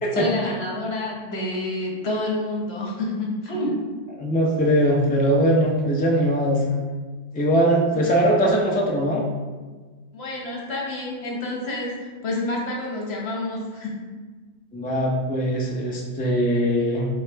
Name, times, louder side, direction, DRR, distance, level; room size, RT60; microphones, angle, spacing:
voice 1, 0.1-3.8 7.9-8.0 10.1-14.0, left 1 dB, 60° left, -2 dB, 1.2 m, -28 dB
voice 2, 4.2-6.8 7.3-9.2 14.7-17.1, equal, 15° left, -2 dB, 0.3 m, -21 dB
6.5 x 2.4 x 3.4 m, 1.4 s
omnidirectional pair, 1.2 m